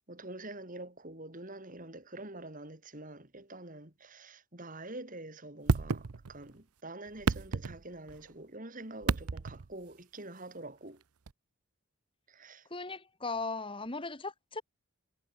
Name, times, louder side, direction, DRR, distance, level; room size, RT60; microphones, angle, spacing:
voice 1, 0.1-11.0 12.3-12.7, right 2 dB, 35° right, 2.9 m, -46 dB
sound 1, 5.7-6.6 7.1-8.3 9.0-9.7 11.3-11.4, right 4 dB, 85° right, 0.7 m, -31 dB
voice 2, 12.7-14.6, left 3 dB, 25° left, 1.7 m, -37 dB
head